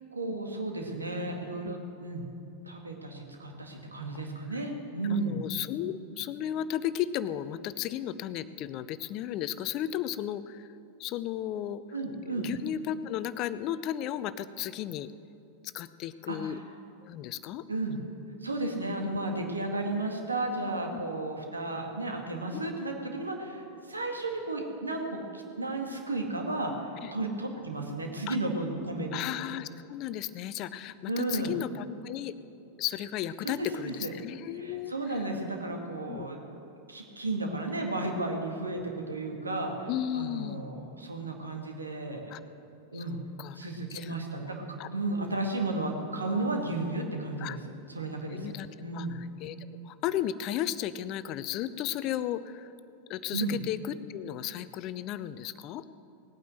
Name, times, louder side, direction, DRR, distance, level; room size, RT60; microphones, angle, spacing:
voice 1, 0.1-2.2 2.7-5.4 11.9-12.5 16.3-16.6 17.7-18.0 18.4-29.2 31.1-31.5 33.4-34.1 34.5-36.4 36.9-42.3 42.9-43.2 43.5-44.5 44.9-47.6 47.9-48.5 48.8-49.2 53.3-53.6, right 2 dB, 80° right, 2 dB, 2.0 m, -33 dB
voice 2, 5.1-10.7 11.0-11.8 12.3-15.1 15.7-16.6 17.0-17.6 19.0-19.2 20.9-21.0 22.6-22.7 27.0-27.1 28.3-28.4 29.1-32.3 32.8-35.2 36.1-36.3 39.9-40.6 42.3-42.4 42.9-43.6 43.9-44.1 44.8-44.9 45.2-45.3 47.4-47.6 48.3-48.7 48.9-52.7 53.1-55.8, left 11 dB, 40° left, 14 dB, 0.6 m, -34 dB
18.5 x 9.3 x 7.8 m, 2.7 s
figure-of-eight pair, 90°, 0 cm